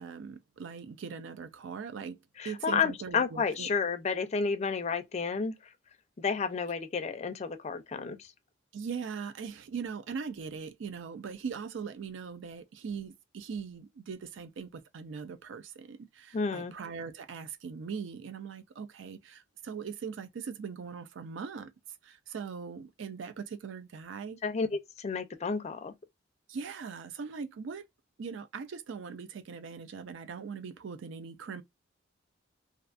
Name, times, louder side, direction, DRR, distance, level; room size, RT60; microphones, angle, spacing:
voice 1, 0.0-2.2 2.4-3.7 8.7-21.7 22.0-24.4 26.5-27.9 28.2-31.6, right 6 dB, 70° right, 0.4 m, -40 dB
voice 2, 2.4-5.6 6.2-8.3 16.3-16.7 24.4-25.9, left 5 dB, 35° left, 0.4 m, -31 dB
2.5 x 2.2 x 2.4 m
head